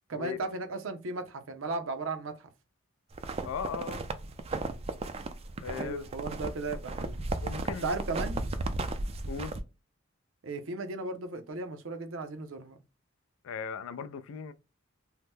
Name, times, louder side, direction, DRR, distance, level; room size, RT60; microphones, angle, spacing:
voice 1, 0.1-2.5 5.8-7.2 7.8-8.4 10.4-12.8, right 3 dB, 70° right, 0.6 m, -36 dB
sound 1, 3.1-9.6, right 2 dB, 30° right, 0.3 m, -35 dB
voice 2, 3.4-4.0 5.6-6.1 7.4-8.0 9.3-9.5 13.4-14.5, left 6 dB, 75° left, 0.3 m, -37 dB
2.8 x 2.1 x 3.4 m
head